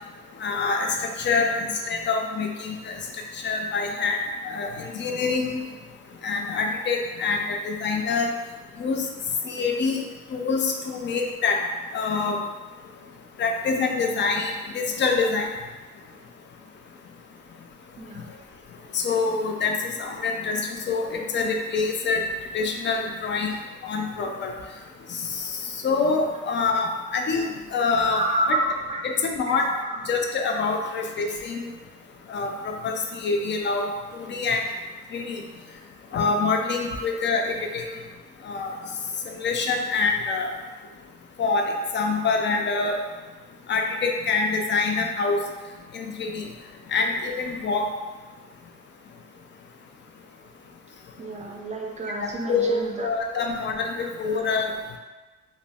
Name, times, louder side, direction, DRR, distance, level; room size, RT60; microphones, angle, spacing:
voice 1, 0.4-0.9 1.2-2.9 3.4-4.2 4.4-5.6 6.2-8.3 8.8-9.0 9.4-10.0 10.3-11.6 11.9-12.4 13.4-15.5 18.9-20.6 20.9-22.2 22.5-23.5 23.8-24.5 25.8-28.6 29.0-29.7 30.1-31.7 32.3-32.9 33.2-33.8 34.1-34.6 35.1-35.4 36.1-37.9 38.5-38.7 39.4-40.5 41.4-43.0 43.7-45.4 45.9-46.4 46.9-47.9 52.2-54.7, left 4 dB, 40° left, 3 dB, 0.4 m, -25 dB
voice 2, 28.1-29.0 29.5-29.6 29.8-30.0 36.9-37.2 37.8-37.9 51.2-53.3 54.0-54.1 54.3-54.5, right 2 dB, 25° right, 0 dB, 0.4 m, -30 dB
2.6 x 2.0 x 3.3 m, 1.3 s
cardioid pair, 90°, 30 cm